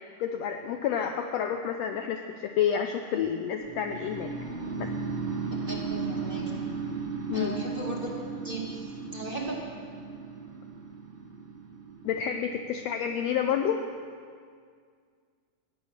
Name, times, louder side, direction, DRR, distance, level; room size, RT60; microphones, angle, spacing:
voice 1, 0.2-4.3 4.8-4.9 7.3-7.6 12.0-13.8, left 8 dB, 85° left, 6 dB, 1.5 m, -29 dB
sound 1, 3.6-13.6, right 4 dB, 35° right, 1.1 m, -36 dB
voice 2, 5.7-6.6 7.3-8.8 9.1-9.6, right 2 dB, 20° right, -5 dB, 1.9 m, -37 dB
16.0 x 10.0 x 6.6 m, 2.1 s
omnidirectional pair, 3.6 m